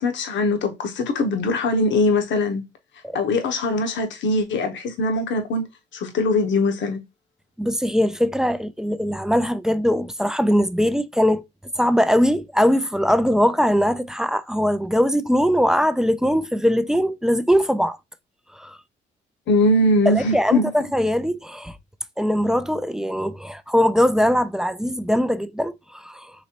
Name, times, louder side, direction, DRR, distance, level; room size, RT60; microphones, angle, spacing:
voice 1, 0.0-2.6 3.1-5.6 5.9-7.0 19.5-20.7, left 2 dB, 65° left, 0.9 m, -21 dB
voice 2, 7.6-11.4 11.8-18.0 18.5-18.8 20.1-21.8 22.2-26.3, equal, 5° right, 0.3 m, -21 dB
4.0 x 3.1 x 2.9 m
cardioid pair, 90°, 20 cm